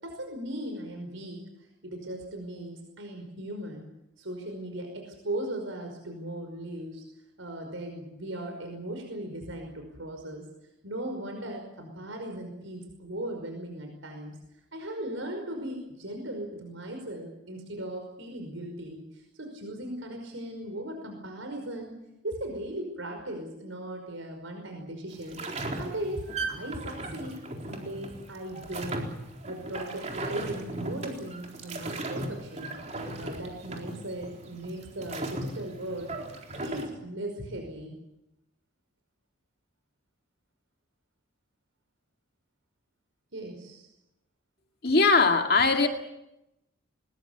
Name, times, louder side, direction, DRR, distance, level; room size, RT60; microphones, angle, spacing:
voice 1, 0.0-1.4 1.8-3.9 4.2-7.0 7.4-10.5 10.8-14.3 14.7-22.0 22.2-25.4 25.8-27.4 27.7-29.2 29.4-32.7 33.2-36.1 36.5-38.0 43.3-43.9, right 1 dB, 80° right, 3 dB, 5.4 m, -38 dB
sound 1, 25.1-36.9, right 2 dB, 35° right, 4.1 m, -37 dB
voice 2, 44.8-45.9, left 4 dB, 50° left, 4 dB, 2.3 m, -20 dB
22.0 x 21.5 x 8.2 m, 0.87 s
head